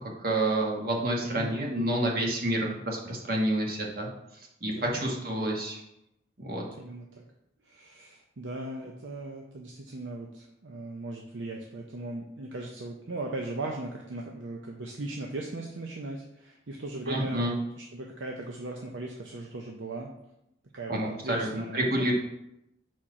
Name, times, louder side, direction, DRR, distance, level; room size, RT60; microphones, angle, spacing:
voice 1, 0.0-4.1 4.6-5.8 6.4-6.6 17.1-17.5 20.9-22.1, right 1 dB, 50° right, -1 dB, 1.4 m, -29 dB
voice 2, 1.2-1.7 4.6-5.3 6.8-7.2 7.6-20.1 20.7-22.1, right 2 dB, 80° right, 0 dB, 0.7 m, -38 dB
6.0 x 4.3 x 4.9 m, 0.84 s
head